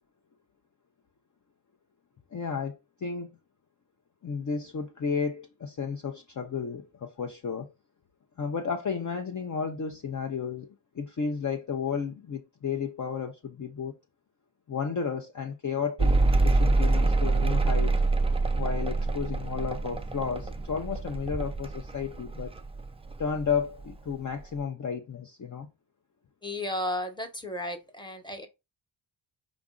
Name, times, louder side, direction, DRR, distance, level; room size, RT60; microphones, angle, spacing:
voice 1, 2.3-3.3 4.2-7.7 8.4-10.7 10.9-13.9 14.7-16.1 16.4-18.0 18.6-22.5 23.2-25.7, left 6 dB, 40° left, 0.6 m, -32 dB
Mechanical fan, 16.0-22.9 23.1-23.9, right 3 dB, 15° right, 0.3 m, -25 dB
voice 2, 26.4-28.5, left 1 dB, 10° left, 1.0 m, -34 dB
4.9 x 2.5 x 3.7 m
cardioid pair, 75°, 49 cm